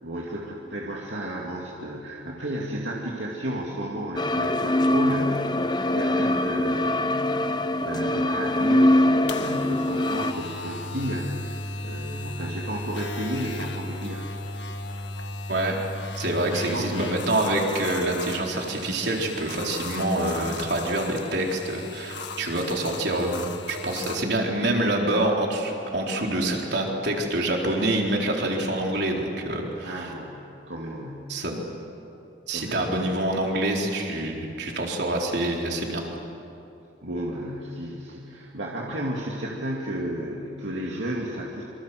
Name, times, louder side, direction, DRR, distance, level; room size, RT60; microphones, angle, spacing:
voice 1, 0.0-14.3 16.5-17.1 29.8-31.4 32.5-32.9 37.0-41.6, right 1 dB, 80° right, -2 dB, 2.6 m, -33 dB
sound 1, 4.2-10.3, left 1 dB, 25° left, 0.8 m, -23 dB
sound 2, 9.3-24.2, left 2 dB, 70° left, 1.7 m, -36 dB
voice 2, 16.1-30.1 31.3-31.6 32.5-36.1, right 1 dB, 65° right, 0 dB, 4.1 m, -26 dB
26.5 x 25.0 x 7.8 m, 2.8 s
head